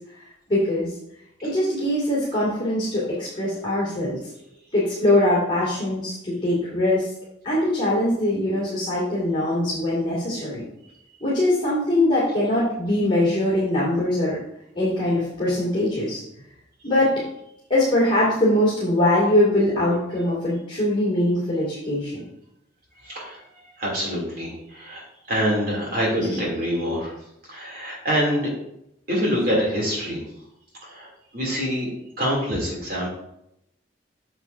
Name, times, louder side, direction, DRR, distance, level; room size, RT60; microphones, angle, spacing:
voice 1, 0.5-0.9 1.4-4.2 4.7-7.1 7.4-10.6 11.2-14.4 14.7-16.2 16.8-17.2 17.7-22.2 26.2-26.3, left 1 dB, 25° left, -9 dB, 2.6 m, -22 dB
voice 2, 23.0-27.2 27.4-28.5 29.1-30.2 30.8-33.1, equal, 50° right, -3 dB, 3.0 m, -26 dB
8.7 x 7.1 x 2.7 m, 0.80 s
head